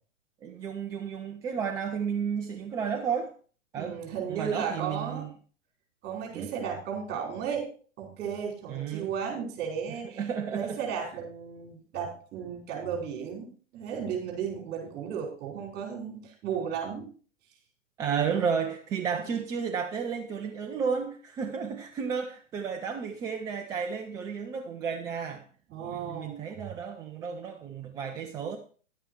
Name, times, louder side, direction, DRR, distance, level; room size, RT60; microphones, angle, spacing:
voice 1, 0.4-3.3 3.7-4.0 4.3-5.3 6.3-6.5 8.7-9.1 10.0-11.1 18.0-25.4 25.8-28.6, right 6 dB, 10° right, 3 dB, 0.4 m, -32 dB
voice 2, 3.8-5.3 6.0-7.7 8.0-10.2 10.5-17.1 25.7-26.3, right 7 dB, 25° right, 1 dB, 5.0 m, -34 dB
11.5 x 8.9 x 4.6 m, 0.41 s
figure-of-eight pair, 110°, 38 cm